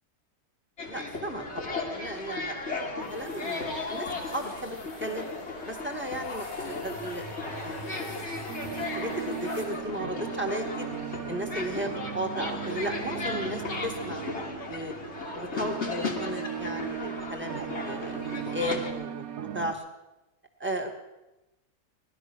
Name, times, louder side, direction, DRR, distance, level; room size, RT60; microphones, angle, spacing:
sound 1, 0.8-18.9, left 3 dB, 45° left, 2.0 m, -36 dB
voice 1, 0.9-5.3 5.6-8.2 8.8-10.9 11.3-14.9 15.3-19.3 19.5-19.8 20.6-21.0, right 1 dB, 5° right, 4 dB, 1.8 m, -35 dB
sound 2, 3.0-10.1, left 2 dB, 75° left, 3.3 m, -48 dB
sound 3, 8.5-19.7, right 9 dB, 65° right, 1.4 m, -38 dB
18.0 x 12.5 x 6.2 m, 0.99 s
omnidirectional pair, 1.7 m